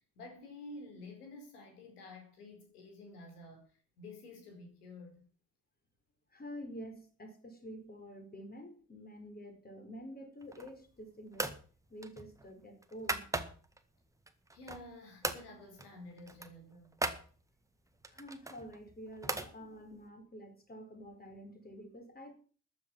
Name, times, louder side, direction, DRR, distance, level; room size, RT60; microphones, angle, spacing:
voice 1, 0.0-5.2 14.5-17.0, left 2 dB, 75° left, 4.2 m, -51 dB
voice 2, 6.3-11.5 11.9-13.3 18.1-22.3, equal, 20° left, 4.7 m, -48 dB
sound 1, 10.4-10.9 11.3-11.6 12.0-13.8 14.3-14.9 15.2-15.5 15.8-15.9 16.2-17.2 18.0-19.5, right 2 dB, 5° right, 1.8 m, -38 dB
14.0 x 10.5 x 6.2 m
figure-of-eight pair, 60°, 46 cm